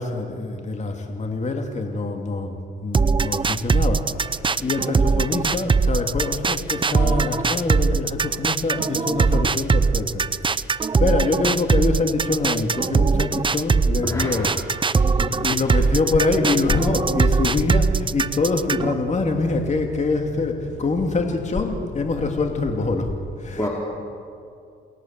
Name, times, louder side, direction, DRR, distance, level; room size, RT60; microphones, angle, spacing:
voice 1, 0.0-10.2 10.7-14.5 15.4-23.7, left 3 dB, 35° left, 3 dB, 2.7 m, -24 dB
sound 1, 2.9-18.9, right 4 dB, 25° right, 0.7 m, -21 dB
voice 2, 14.0-14.6 14.9-15.3 15.7-15.8 23.6-23.7, left 1 dB, 15° left, -4 dB, 4.6 m, -28 dB
sound 2, 16.8-22.5, left 4 dB, 55° left, 4.6 m, -39 dB
29.0 x 20.5 x 7.6 m, 2.4 s
cardioid pair, 90°, 20 cm